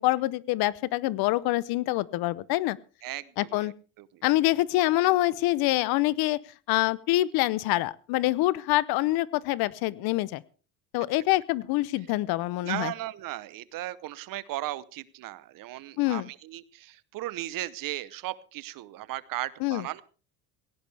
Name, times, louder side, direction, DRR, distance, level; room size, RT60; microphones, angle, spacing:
voice 1, 0.0-2.8 3.4-3.7 4.2-6.4 6.7-10.4 10.9-12.9 16.0-16.3 19.6-19.8, left 17 dB, 70° left, 22 dB, 0.8 m, -25 dB
voice 2, 3.0-4.2 12.6-20.0, right 15 dB, 55° right, 18 dB, 0.9 m, -36 dB
17.5 x 16.5 x 3.4 m, 0.36 s
cardioid pair, 110°, 39 cm